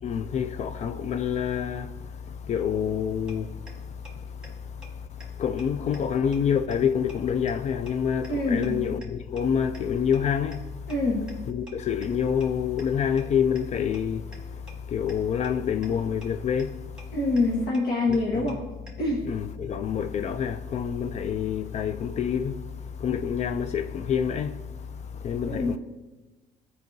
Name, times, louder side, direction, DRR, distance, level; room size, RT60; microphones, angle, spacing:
voice 1, 0.0-10.9 11.5-17.1 18.1-18.5 19.3-25.8, left 7 dB, 40° left, 0.4 m, -28 dB
sound 1, 3.3-3.4 3.7-3.8 4.0-4.1 4.4-4.5 4.8-4.9 5.2-5.3 5.6-5.7 5.9-6.0 6.3-6.4 6.7-6.8 7.1-7.2 7.5-7.6 7.9-8.0 8.2-8.3 8.6-8.7 9.0-9.1 9.4-9.5 9.7-9.8 10.1-10.2 10.5-10.6 10.9-11.0 11.3-11.4 11.7-11.8 12.0-12.1 12.4-12.5 12.8-12.9 13.2-13.3 13.6-13.7 13.9-14.0 14.3-14.4 14.7-14.8 15.1-15.2 15.4-15.5 15.8-15.9 16.2-16.3 16.6-16.7 17.0-17.1 17.4-17.5 17.7-17.8 18.1-18.2 18.5-18.6 18.9-19.0, equal, 5° right, 1.4 m, -46 dB
voice 2, 8.3-8.8 10.9-11.3 17.1-18.7 19.0-19.3 25.5-25.8, left 2 dB, 65° left, 1.4 m, -25 dB
13.5 x 4.7 x 2.6 m
cardioid pair, 110°, 17 cm